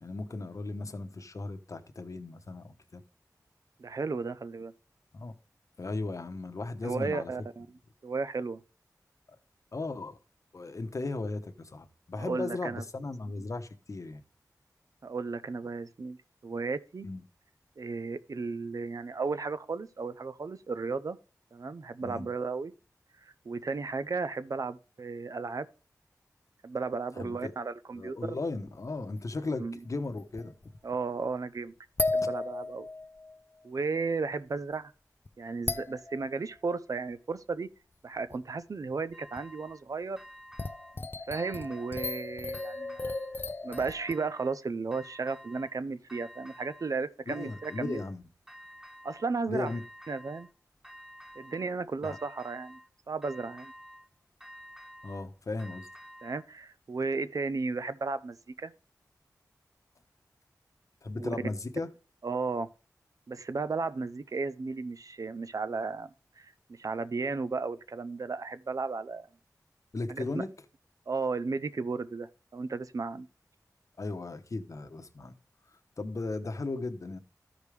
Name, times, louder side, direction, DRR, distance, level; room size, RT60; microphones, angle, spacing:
voice 1, 0.0-3.0 5.1-5.3 5.8-7.3 9.3-9.4 9.7-10.2 10.5-14.2 17.0-17.2 22.0-22.3 27.2-27.5 27.9-30.5 47.3-48.2 49.5-49.8 52.0-52.2 55.0-55.9 61.0-61.9 69.9-70.5 74.0-75.3 76.0-77.2, left 3 dB, 55° left, 1.0 m, -36 dB
voice 2, 3.8-4.7 6.8-7.7 8.0-8.6 12.2-12.8 15.0-16.2 16.4-17.1 17.8-21.2 21.5-22.7 23.2-25.7 26.6-28.4 29.6-29.8 30.8-31.7 32.1-32.9 33.6-34.9 35.4-37.7 38.0-40.2 41.3-43.2 43.6-48.0 49.0-49.7 50.1-50.5 51.4-52.8 53.1-53.7 56.2-58.7 61.1-61.4 62.2-62.7 63.3-66.1 66.4-66.5 66.8-69.3 70.1-70.4 71.1-73.3, right 4 dB, 60° right, 0.6 m, -34 dB
sound 1, 29.4-29.5 30.0-30.9 32.0-33.4 34.7-34.8 35.3-35.4 35.7-36.3 38.3-38.4 39.4-39.5 40.6-44.1, left 3 dB, 35° left, 0.4 m, -35 dB
sound 2, 39.1-39.8 40.2-41.0 41.3-42.2 42.5-43.4 43.7-44.6 44.9-45.8 46.1-47.0 47.3-48.1 48.5-49.3 49.7-50.5 50.8-51.7 52.0-52.9 53.2-54.1 54.4-56.5, equal, 5° right, 0.7 m, -50 dB
13.5 x 5.0 x 3.3 m
wide cardioid pair, 80°, 7 cm